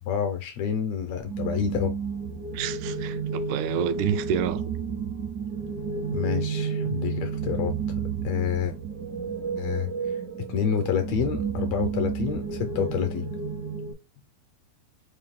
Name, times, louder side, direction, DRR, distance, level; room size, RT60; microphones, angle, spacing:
voice 1, 0.0-2.0 6.1-7.8 8.2-8.8 9.6-9.9 10.5-13.3, left 7 dB, 75° left, 1.7 m, -28 dB
sound 1, 1.2-13.9, right 5 dB, 65° right, 1.0 m, -31 dB
voice 2, 2.5-4.6, right 9 dB, 85° right, 2.0 m, -29 dB
4.7 x 2.2 x 3.5 m
omnidirectional pair, 3.4 m